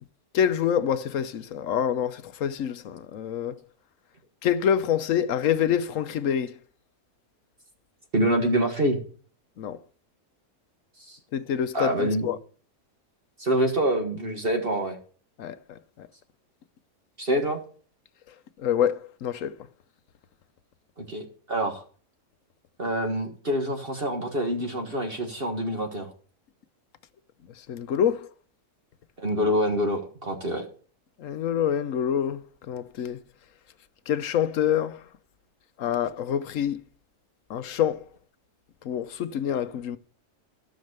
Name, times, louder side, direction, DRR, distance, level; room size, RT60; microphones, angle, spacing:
voice 1, 0.3-3.6 4.4-6.6 9.6-9.8 11.3-12.4 15.4-16.1 18.6-19.7 27.7-28.3 31.2-33.2 34.1-35.0 35.8-36.8 37.5-38.1 38.8-40.0, left 9 dB, 65° left, 1.0 m, -26 dB
voice 2, 8.1-9.0 11.1-11.2 11.7-12.2 13.4-15.0 17.2-17.6 21.0-21.8 22.8-26.1 29.2-30.6, right 1 dB, 40° right, 1.7 m, -26 dB
14.0 x 6.5 x 6.6 m
omnidirectional pair, 1.6 m